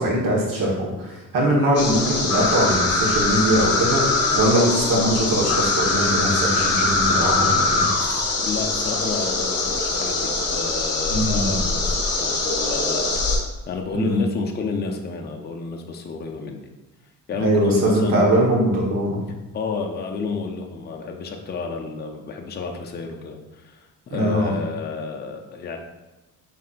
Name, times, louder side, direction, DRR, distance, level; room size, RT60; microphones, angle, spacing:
voice 1, 0.0-8.2 11.1-11.5 13.9-14.2 17.4-19.2 24.1-24.5, right 1 dB, 70° right, -3 dB, 1.5 m, -21 dB
sound 1, 1.7-13.4, left 3 dB, 45° left, 0.9 m, -22 dB
voice 2, 8.4-13.0 13.7-16.6 17.3-18.3 19.5-23.8 24.1-25.8, left 5 dB, 30° left, 2 dB, 0.5 m, -30 dB
5.2 x 3.2 x 2.5 m, 1.1 s
cardioid pair, 90°, 35 cm